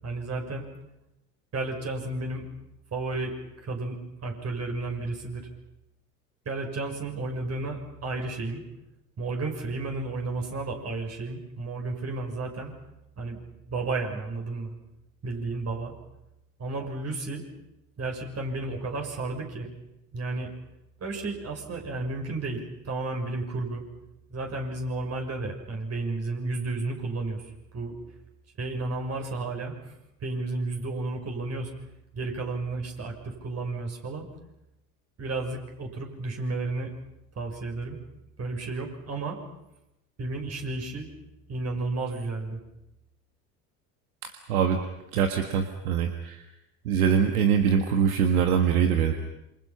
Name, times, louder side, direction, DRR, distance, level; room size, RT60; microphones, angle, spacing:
voice 1, 0.0-0.7 1.5-2.4 2.9-5.5 6.4-8.6 9.2-12.7 13.2-13.4 13.7-14.7 15.2-15.9 16.6-17.4 18.0-19.7 20.1-20.5 21.0-23.8 24.3-27.9 28.6-29.9 30.2-31.7 32.1-34.3 35.2-36.9 37.4-38.0 38.4-39.4 40.2-41.1 41.5-42.6, right 3 dB, 35° right, 2 dB, 6.3 m, -32 dB
voice 2, 44.2-44.8 45.1-46.4 46.9-49.1, right 7 dB, 75° right, 6 dB, 1.8 m, -23 dB
28.0 x 25.5 x 5.9 m, 0.89 s
hypercardioid pair, 75°, 44 cm